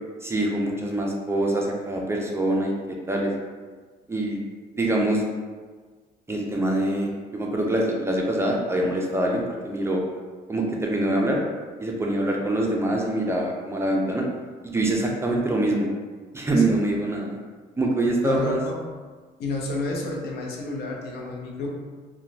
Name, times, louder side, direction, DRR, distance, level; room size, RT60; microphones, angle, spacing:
voice 1, 0.2-2.7 3.1-3.3 4.1-4.4 4.8-5.2 6.3-10.0 10.5-11.4 11.8-14.3 14.6-15.9 16.3-17.4 17.8-18.6, right 1 dB, 15° right, -1 dB, 0.4 m, -24 dB
voice 2, 18.2-18.9 19.4-21.7, left 2 dB, 75° left, -1 dB, 0.6 m, -30 dB
2.9 x 2.1 x 2.6 m, 1.5 s
cardioid pair, 110°, 17 cm